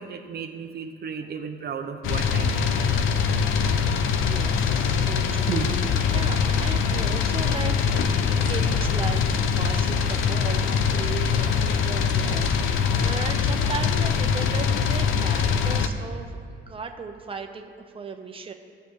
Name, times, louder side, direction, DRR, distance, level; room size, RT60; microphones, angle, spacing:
voice 1, 0.0-2.8 4.4-4.5, right 6 dB, 55° right, 4 dB, 0.8 m, -35 dB
sound 1, 2.0-15.9, left 6 dB, 85° left, 0.6 m, -23 dB
voice 2, 3.4-16.4 16.7-18.5, right 5 dB, 25° right, 4 dB, 0.8 m, -37 dB
sound 2, 5.4-13.4, right 5 dB, 80° right, 1.6 m, -39 dB
18.0 x 6.9 x 3.2 m, 2.4 s
cardioid pair, 90°, 20 cm